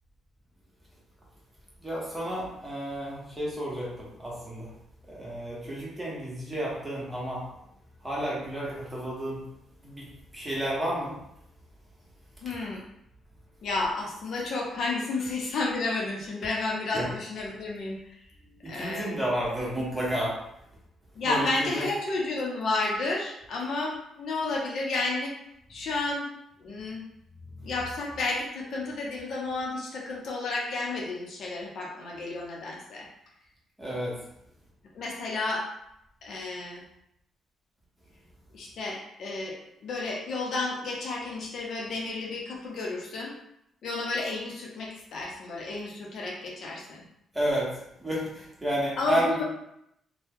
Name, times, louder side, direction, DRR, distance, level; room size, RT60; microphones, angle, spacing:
voice 1, 1.8-4.7 5.1-7.4 8.0-9.4 9.8-10.1 10.3-11.1 16.9-17.1 18.6-20.3 21.2-21.8 33.8-34.1 47.3-47.7 48.0-49.4, equal, 10° right, -6 dB, 1.3 m, -31 dB
voice 2, 12.4-12.8 13.6-18.0 18.7-19.2 21.2-25.3 25.7-26.3 26.6-27.0 27.6-33.1 34.9-35.6 36.2-36.8 38.5-39.5 39.8-43.3 43.8-47.0 49.0-49.4, left 3 dB, 65° left, -2 dB, 0.7 m, -31 dB
2.7 x 2.2 x 3.5 m, 0.78 s
cardioid pair, 90°, 0 cm